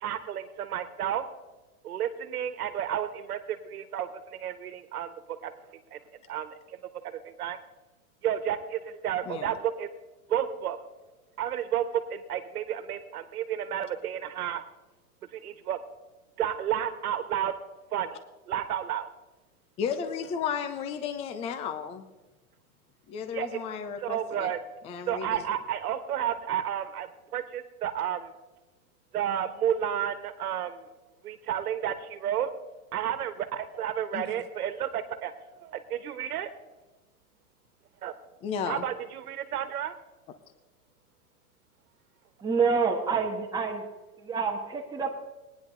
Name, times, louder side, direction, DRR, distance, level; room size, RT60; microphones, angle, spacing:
voice 1, 0.0-1.2 1.8-5.1 5.4-5.5 5.9-6.0 6.3-6.8 7.2-7.6 8.2-9.9 10.3-10.8 11.4-14.6 15.3-15.8 16.4-17.6 17.9-18.2 18.5-19.1 23.3-23.6 24.0-24.6 25.1-28.3 29.1-30.9 31.2-32.5 32.9-35.3 35.6-36.5 38.0-38.1 38.7-39.9, right 10 dB, 80° right, 11 dB, 1.5 m, -31 dB
voice 2, 9.2-9.5 19.8-22.0 23.1-24.5 24.8-25.5 34.1-34.4 38.4-38.9, left 7 dB, 15° left, 10 dB, 0.5 m, -34 dB
voice 3, 42.4-43.8 44.1-45.1, right 5 dB, 10° right, 0 dB, 1.4 m, -27 dB
19.5 x 10.0 x 3.9 m, 1.1 s
hypercardioid pair, 145°, 44 cm